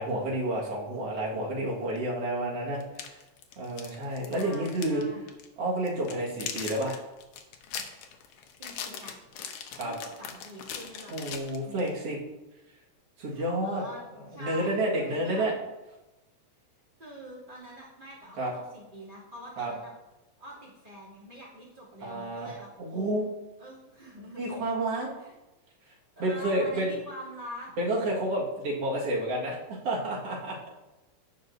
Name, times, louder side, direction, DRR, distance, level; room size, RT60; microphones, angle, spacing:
voice 1, 0.0-3.2 3.6-5.0 5.6-7.0 9.8-9.9 11.1-12.2 13.2-13.8 14.3-15.5 18.4-18.5 19.6-19.7 22.0-22.5 22.8-23.3 24.4-25.1 26.2-26.9 27.8-30.6, right 1 dB, 55° right, -3 dB, 2.6 m, -30 dB
sound 1, 2.0-2.1 2.8-5.0 5.3-5.5 5.9-11.9, left 7 dB, 80° left, 2.1 m, -40 dB
voice 2, 4.3-5.3 8.6-9.2 9.8-11.1 11.6-11.9 13.2-14.0 14.3-15.5 17.0-19.9 20.4-22.7 23.6-24.6 25.2-25.4 26.2-27.7, equal, 15° right, -7 dB, 2.5 m, -45 dB
15.5 x 5.4 x 2.6 m, 1.0 s
omnidirectional pair, 3.3 m